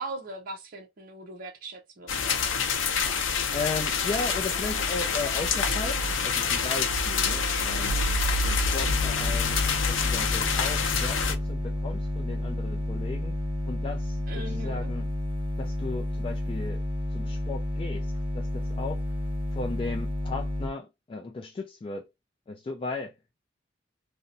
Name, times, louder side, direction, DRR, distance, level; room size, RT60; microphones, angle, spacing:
voice 1, 0.0-2.7 14.3-14.9, right 2 dB, 50° right, 0.6 m, -40 dB
sound 1, 2.1-11.3, left 5 dB, 80° left, 0.6 m, -26 dB
voice 2, 3.3-8.0 8.4-9.6 9.9-13.4 13.6-15.1 15.6-16.8 17.1-19.0 19.5-22.1 22.5-23.1, left 3 dB, 30° left, 0.3 m, -36 dB
sound 2, 8.8-20.7, left 1 dB, 25° right, 1.1 m, -31 dB
2.6 x 2.1 x 3.8 m
head